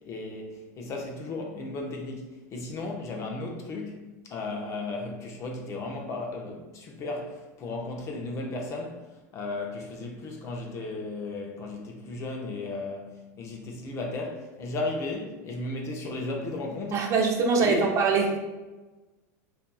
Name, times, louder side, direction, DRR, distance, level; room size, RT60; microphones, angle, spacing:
voice 1, 0.0-9.0 9.3-17.1 17.6-18.0, left 2 dB, 35° left, 1 dB, 0.5 m, -35 dB
voice 2, 16.9-18.4, right 4 dB, 35° right, 2 dB, 0.4 m, -23 dB
2.7 x 2.3 x 2.3 m, 1.1 s
supercardioid pair, 125°, 9 cm